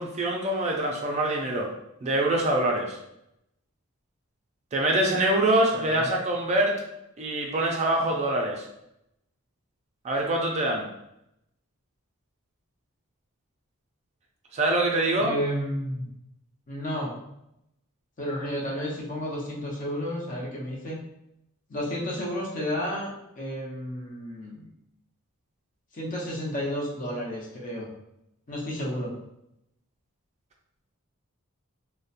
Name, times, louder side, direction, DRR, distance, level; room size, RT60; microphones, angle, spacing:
voice 1, 0.0-1.7 2.0-3.0 4.7-6.8 7.2-8.6 10.0-10.9 14.5-15.3, right 1 dB, 30° right, -1 dB, 0.3 m, -24 dB
voice 2, 5.8-6.1 15.2-16.1 16.7-17.1 18.2-21.0 21.7-24.7 25.9-27.9 28.5-29.1, equal, 40° left, -3 dB, 0.6 m, -32 dB
2.7 x 2.1 x 2.4 m, 0.82 s
head